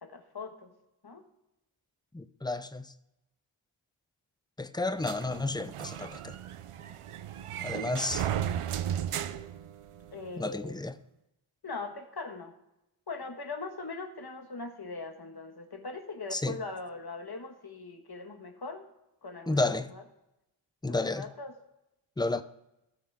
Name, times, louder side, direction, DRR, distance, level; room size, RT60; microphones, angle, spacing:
voice 1, 0.0-0.7 1.0-1.2 10.1-10.7 11.6-12.5 13.1-18.9 19.2-20.0 20.9-21.5, left 3 dB, 50° left, 1.5 m, -41 dB
voice 2, 2.1-2.9 4.6-6.4 7.6-8.3 10.4-10.9 16.3-16.6 19.5-19.9 20.8-21.3 22.2-22.4, left 2 dB, 10° left, 0.6 m, -31 dB
sound 1, 5.0-10.3, right 10 dB, 90° right, 0.6 m, -35 dB
18.0 x 6.1 x 3.6 m
wide cardioid pair, 65°, 50 cm